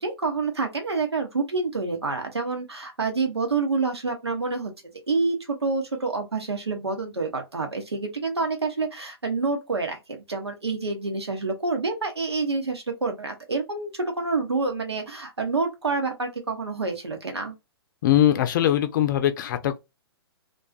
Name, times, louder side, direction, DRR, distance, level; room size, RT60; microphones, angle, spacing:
voice 1, 0.0-4.7 5.1-17.5, right 3 dB, 90° right, 0.9 m, -27 dB
voice 2, 18.0-19.8, left 12 dB, 50° left, 0.5 m, -21 dB
2.4 x 2.3 x 2.4 m
figure-of-eight pair, 120°, 13 cm